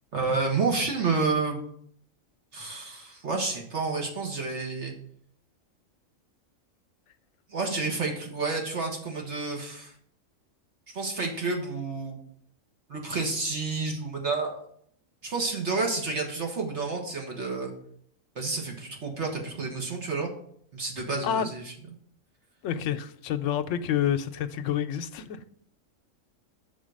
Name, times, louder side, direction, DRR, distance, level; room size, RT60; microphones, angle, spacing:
voice 1, 0.1-1.6 2.5-4.9 7.5-9.9 10.9-12.2 12.9-14.6 15.2-17.7 18.3-20.3 20.7-21.6, right 4 dB, 60° right, 1.7 m, -30 dB
voice 2, 22.6-25.5, left 9 dB, 75° left, 0.9 m, -29 dB
6.3 x 4.0 x 6.3 m
omnidirectional pair, 1.4 m